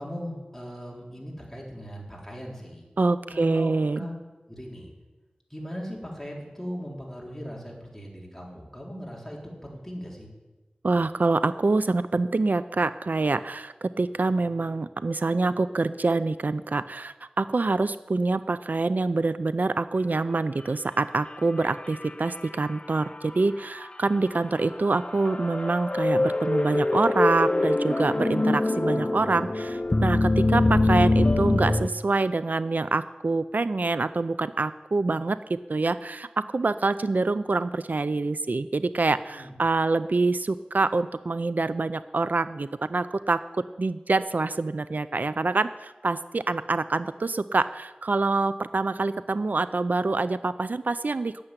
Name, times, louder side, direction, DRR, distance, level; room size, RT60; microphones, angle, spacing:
voice 1, 0.0-2.9 3.3-4.1 4.5-4.9 5.5-10.3 39.3-39.5, equal, 10° left, -2 dB, 3.8 m, -38 dB
voice 2, 3.0-4.1 10.8-43.4 43.8-51.4, right 3 dB, 70° right, 13 dB, 0.4 m, -26 dB
sound 1, 21.3-22.7 23.2-23.3 24.4-31.9, left 2 dB, 35° left, 0.6 m, -24 dB
11.5 x 7.8 x 9.7 m, 1.2 s
wide cardioid pair, 55°, 3 cm